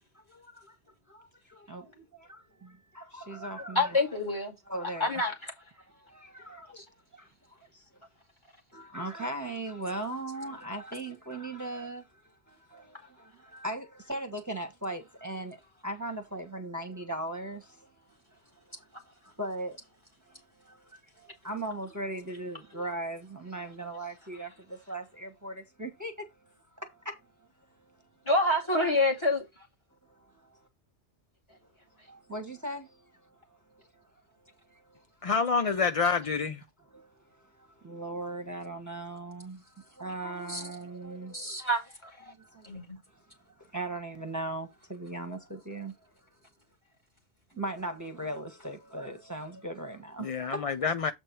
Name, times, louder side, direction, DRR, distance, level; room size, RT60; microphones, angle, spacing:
voice 1, 0.1-0.8 1.1-4.0 4.7-5.2 5.9-6.8 7.1-7.3 7.6-7.8 8.7-17.9 18.3-19.8 20.3-26.3 26.8-27.2 30.1-30.6 31.5-31.6 32.1-34.0 34.7-35.0 36.9-41.6 42.3-42.8 43.1-45.9 47.5-50.6, right 1 dB, 15° right, 1.3 m, -39 dB
voice 2, 3.8-4.5 5.0-5.5 6.8-6.9 28.3-29.5 40.5-40.6 41.3-42.3 42.6-43.0, left 2 dB, 25° left, 2.3 m, -27 dB
voice 3, 35.2-36.6 50.2-51.1, left 5 dB, 50° left, 0.4 m, -27 dB
8.0 x 4.4 x 4.5 m
omnidirectional pair, 1.2 m